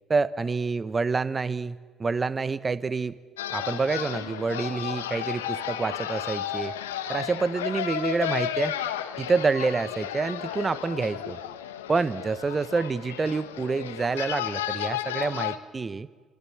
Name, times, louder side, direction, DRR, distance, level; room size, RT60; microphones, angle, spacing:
voice 1, 0.1-3.1 3.5-6.7 7.1-8.7 9.2-11.4 11.9-16.1, right 4 dB, 30° right, 15 dB, 1.0 m, -27 dB
sound 1, 3.4-15.6, left 11 dB, 85° left, 1.1 m, -33 dB
27.0 x 26.0 x 7.5 m, 1.5 s
hypercardioid pair, 50°, 0 cm